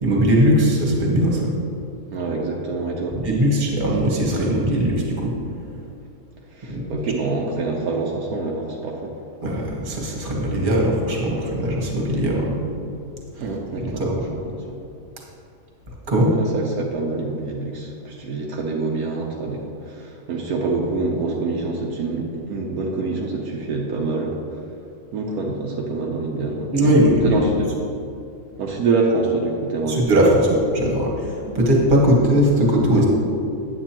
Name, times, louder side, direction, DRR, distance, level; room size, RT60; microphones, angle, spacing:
voice 1, 0.0-1.5 3.1-5.3 6.7-7.0 9.4-12.6 13.8-14.3 16.1-16.3 26.7-27.4 29.9-31.1 31.5-33.1, equal, 35° right, -2 dB, 1.5 m, -19 dB
voice 2, 2.1-3.2 6.5-9.1 13.4-14.6 16.4-24.4 25.1-26.9 27.2-27.7 28.6-30.1 31.4-31.6, right 3 dB, 85° right, -1 dB, 1.2 m, -26 dB
9.0 x 8.3 x 2.9 m, 2.5 s
omnidirectional pair, 1.5 m